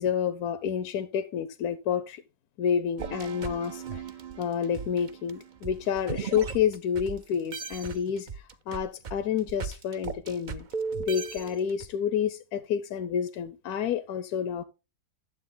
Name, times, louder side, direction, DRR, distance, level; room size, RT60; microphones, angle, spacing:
voice 1, 0.0-2.2 2.6-4.0 4.4-10.7 11.0-14.6, left 8 dB, 70° left, 1.1 m, -29 dB
sound 1, 3.0-7.2 7.5-11.9, right 5 dB, 60° right, 0.4 m, -37 dB
10.5 x 7.9 x 3.8 m
omnidirectional pair, 1.8 m